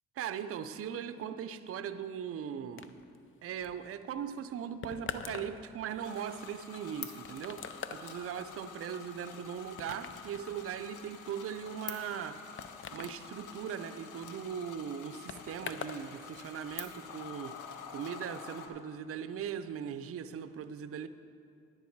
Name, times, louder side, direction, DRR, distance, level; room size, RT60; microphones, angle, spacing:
voice 1, 0.2-2.9 3.4-12.4 12.9-21.1, right 8 dB, 50° right, 11 dB, 0.5 m, -39 dB
sound 1, 2.8-16.1 16.3-17.0, left 6 dB, 40° left, 0.6 m, -46 dB
sound 2, 6.0-18.7, left 7 dB, 80° left, 0.9 m, -48 dB
10.5 x 9.5 x 4.6 m, 2.4 s
cardioid pair, 90°, 30 cm